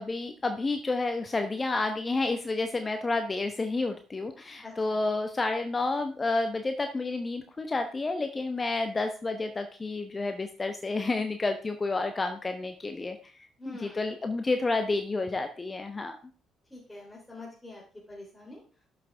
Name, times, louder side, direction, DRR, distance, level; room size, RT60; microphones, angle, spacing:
voice 1, 0.0-13.2 13.7-16.2, left 3 dB, 25° left, 7 dB, 0.9 m, -30 dB
voice 2, 4.6-5.0 13.6-14.0 16.7-17.8 18.1-18.6, left 2 dB, 10° left, -5 dB, 3.4 m, -45 dB
12.5 x 6.2 x 3.5 m, 0.39 s
figure-of-eight pair, 45°, 0 cm